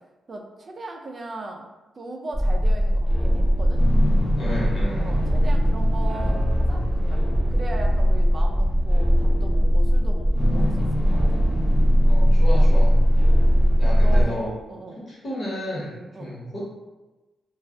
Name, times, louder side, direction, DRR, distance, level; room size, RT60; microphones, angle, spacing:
voice 1, 0.3-1.6 1.9-3.8 5.0-7.2 7.5-11.4 13.2-13.3 14.0-14.4 14.7-15.0 16.1-16.4, right 2 dB, 35° right, 2 dB, 0.4 m, -38 dB
sound 1, 2.3-14.2, equal, 10° left, 0.8 m, -19 dB
voice 2, 4.4-5.1 12.0-12.9 13.8-14.5 15.1-16.6, equal, 50° left, -7 dB, 1.2 m, -31 dB
2.3 x 2.2 x 3.6 m, 1.1 s
wide cardioid pair, 130°, 0 cm